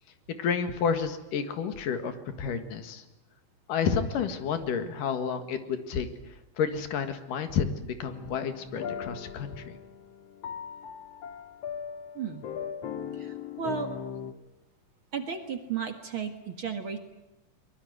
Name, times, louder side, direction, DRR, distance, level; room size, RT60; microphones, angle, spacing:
voice 1, 0.3-3.0 3.7-6.1 6.6-9.8, left 6 dB, 85° left, 9 dB, 3.4 m, -30 dB
sound 1, 8.1-14.3, left 7 dB, 55° left, 2.3 m, -39 dB
voice 2, 13.2-13.9 15.1-17.0, right 6 dB, 45° right, 6 dB, 2.2 m, -34 dB
23.0 x 21.5 x 9.5 m, 0.97 s
omnidirectional pair, 3.7 m